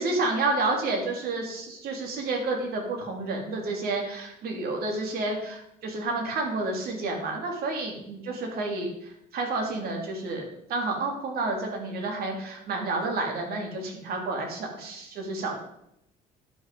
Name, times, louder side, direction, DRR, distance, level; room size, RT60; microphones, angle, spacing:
voice 1, 0.0-8.9 9.3-15.6, right 2 dB, 65° right, 1 dB, 3.0 m, -30 dB
11.0 x 6.2 x 5.3 m, 0.78 s
cardioid pair, 110°, 17 cm